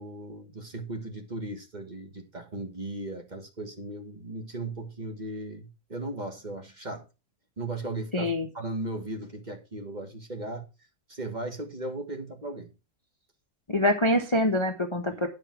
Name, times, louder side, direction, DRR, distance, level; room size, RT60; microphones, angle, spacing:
voice 1, 0.0-7.0 7.6-10.7 11.1-12.7 15.1-15.3, right 2 dB, 30° right, 1.7 m, -37 dB
voice 2, 8.1-8.5 13.7-15.3, left 1 dB, 20° left, 0.9 m, -25 dB
10.0 x 5.4 x 5.9 m
omnidirectional pair, 1.7 m